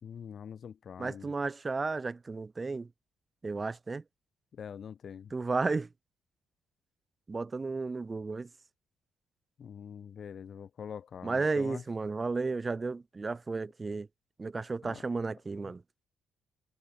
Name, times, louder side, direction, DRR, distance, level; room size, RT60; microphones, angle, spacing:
voice 1, 0.0-1.3 4.5-5.3 9.6-11.8 14.8-15.1, left 7 dB, 55° left, 3.4 m, -44 dB
voice 2, 1.0-2.9 3.4-4.0 5.3-5.9 7.3-8.5 11.2-14.1 14.4-15.8, right 3 dB, 25° right, 0.7 m, -33 dB
cardioid pair, 90°, 0 cm